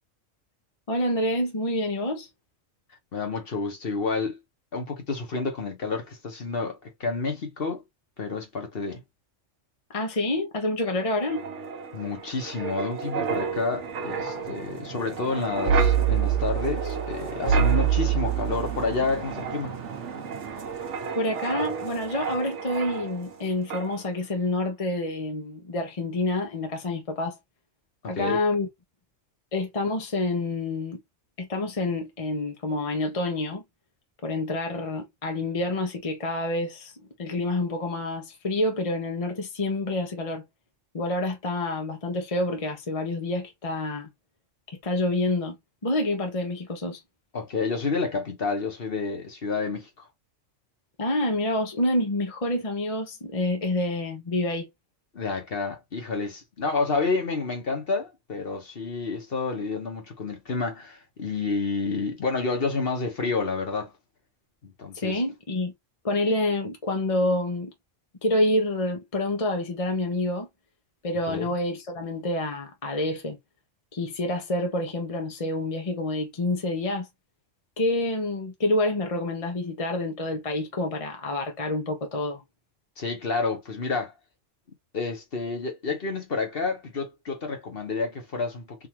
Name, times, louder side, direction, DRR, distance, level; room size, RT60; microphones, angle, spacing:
voice 1, 0.9-2.3 9.9-11.5 21.2-27.4 28.1-28.7 29.5-31.0 31.4-33.6 34.2-36.9 37.2-40.4 40.9-44.1 44.7-45.6 45.8-47.0 51.0-54.7 64.9-65.7 66.0-67.7 68.2-70.5 71.0-73.4 73.9-77.1 77.8-82.4, left 1 dB, 30° left, 0.8 m, -27 dB
voice 2, 3.1-4.4 4.7-7.8 8.2-9.0 11.9-19.7 28.0-28.4 47.3-50.0 55.1-63.9 64.6-65.2 71.3-71.5 83.0-84.1 84.9-88.9, left 4 dB, 50° left, 1.3 m, -29 dB
Wind, 11.0-23.4 23.7-23.9, right 7 dB, 65° right, 1.2 m, -28 dB
3.6 x 2.7 x 2.8 m
omnidirectional pair, 1.3 m